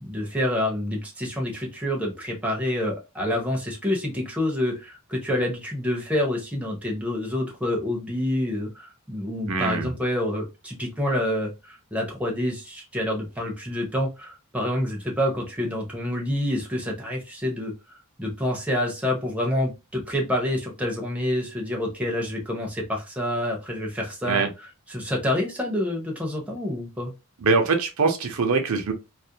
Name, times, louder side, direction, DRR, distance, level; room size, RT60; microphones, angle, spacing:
voice 1, 0.0-24.4 24.9-27.1, left 1 dB, 5° right, 0.5 m, -27 dB
voice 2, 9.5-9.9 24.3-24.5 27.4-28.9, right 4 dB, 70° right, 0.5 m, -23 dB
2.4 x 2.1 x 2.7 m
head